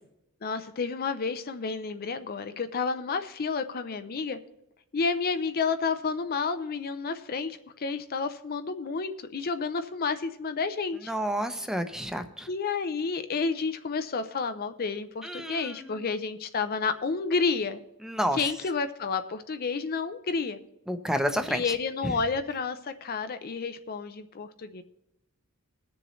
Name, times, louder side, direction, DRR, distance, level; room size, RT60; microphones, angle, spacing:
voice 1, 0.4-4.4 4.9-11.1 12.5-17.8 18.3-20.6 21.5-24.8, left 4 dB, 45° left, 10 dB, 0.5 m, -30 dB
voice 2, 11.1-12.5 15.2-16.0 18.0-18.4 20.9-21.7 22.0-22.1, equal, 5° right, 8 dB, 0.7 m, -30 dB
21.0 x 7.0 x 3.1 m, 0.85 s
head